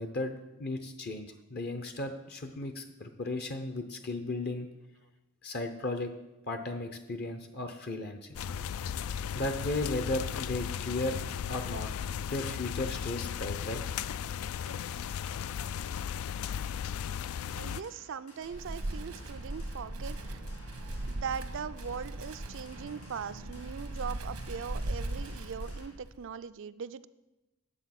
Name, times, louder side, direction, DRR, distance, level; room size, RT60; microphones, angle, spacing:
voice 1, 0.0-4.7 5.4-6.1 6.5-8.7 9.3-11.2 11.5-11.9 12.2-13.8, left 2 dB, 45° left, 7 dB, 0.7 m, -35 dB
sound 1, 8.3-17.8, left 8 dB, 70° left, 0.3 m, -36 dB
voice 2, 17.5-20.4 21.1-27.1, right 6 dB, 60° right, 14 dB, 0.4 m, -40 dB
sound 2, 17.6-25.9, left 2 dB, 90° left, 3.4 m, -56 dB
Wind, 18.4-26.2, right 1 dB, 90° right, 1.1 m, -39 dB
9.9 x 7.4 x 5.9 m, 1.0 s
head